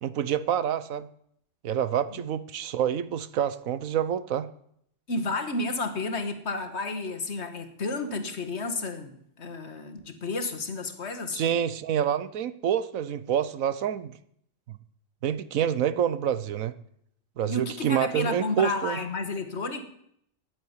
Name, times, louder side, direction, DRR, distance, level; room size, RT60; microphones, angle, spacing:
voice 1, 0.0-1.1 1.6-4.5 11.3-14.1 14.7-14.8 15.2-16.7 17.4-19.0, right 9 dB, 85° right, 14 dB, 1.2 m, -27 dB
voice 2, 5.1-11.4 17.5-19.8, left 3 dB, 55° left, 6 dB, 1.7 m, -31 dB
10.0 x 9.2 x 9.6 m, 0.69 s
omnidirectional pair, 1.4 m